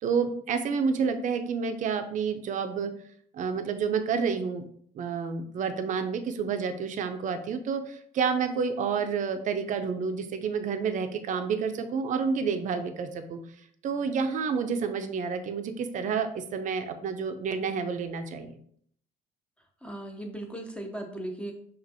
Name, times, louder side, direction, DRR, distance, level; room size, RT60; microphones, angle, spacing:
voice 1, 0.0-2.9 3.3-4.6 4.9-13.4 13.8-18.6, right 6 dB, 50° right, 8 dB, 0.5 m, -29 dB
voice 2, 19.8-21.5, right 1 dB, 5° left, 3 dB, 0.6 m, -37 dB
6.0 x 2.5 x 2.7 m, 0.64 s
cardioid pair, 110°, 17 cm